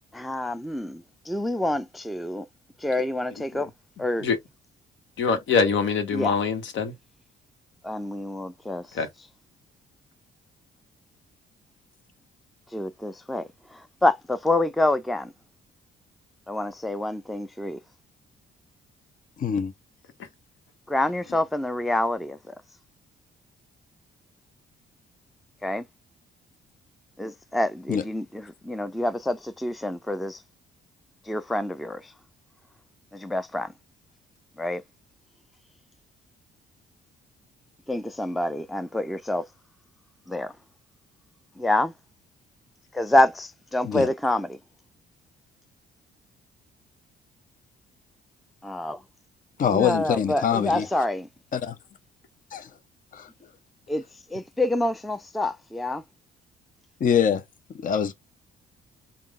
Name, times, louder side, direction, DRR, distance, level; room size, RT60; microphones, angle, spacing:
voice 1, 0.1-2.5 2.8-3.7 4.0-4.3 6.1-6.4 7.8-9.0 12.7-15.3 16.5-17.8 20.9-22.5 25.6-25.8 27.2-30.4 31.3-32.1 33.1-33.7 34.6-34.8 37.9-39.5 40.3-40.5 41.6-41.9 42.9-44.6 48.6-49.0 49.7-51.3 53.9-54.0 54.3-56.0, left 1 dB, ahead, 0.4 m, -27 dB
voice 2, 5.2-6.9 8.9-9.1, left 5 dB, 70° left, 1.2 m, -23 dB
voice 3, 19.4-19.7 27.9-28.0 43.8-44.1 49.6-50.8 51.5-51.7 52.5-52.7 53.1-53.3 57.0-57.4 57.8-58.1, left 8 dB, 45° left, 0.6 m, -24 dB
3.7 x 2.4 x 3.6 m
cardioid pair, 90°, 20 cm